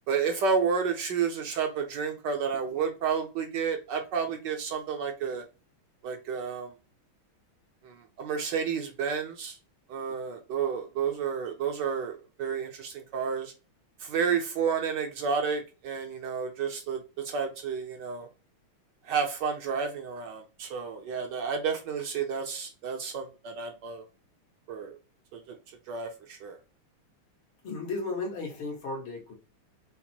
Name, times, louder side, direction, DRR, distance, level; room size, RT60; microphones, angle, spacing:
voice 1, 0.1-5.4 6.0-6.7 7.8-9.5 9.9-13.5 14.0-18.3 19.0-24.0 24.7-25.0 25.5-25.6 25.9-26.6, right 6 dB, 65° right, 4 dB, 1.3 m, -31 dB
voice 2, 27.6-29.3, left 3 dB, 80° left, 0 dB, 2.3 m, -34 dB
5.8 x 2.1 x 4.2 m, 0.31 s
omnidirectional pair, 2.3 m